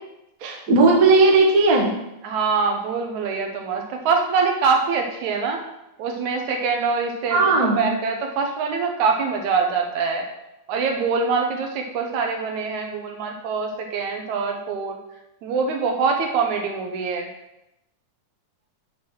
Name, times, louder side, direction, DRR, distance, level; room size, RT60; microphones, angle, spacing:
voice 1, 0.4-1.9 7.3-7.9, right 3 dB, 50° right, -1 dB, 1.1 m, -16 dB
voice 2, 2.2-5.6 6.0-10.3 10.7-15.0 15.4-17.3, right 5 dB, 70° right, 3 dB, 2.1 m, -24 dB
9.5 x 4.0 x 6.0 m, 0.89 s
omnidirectional pair, 3.7 m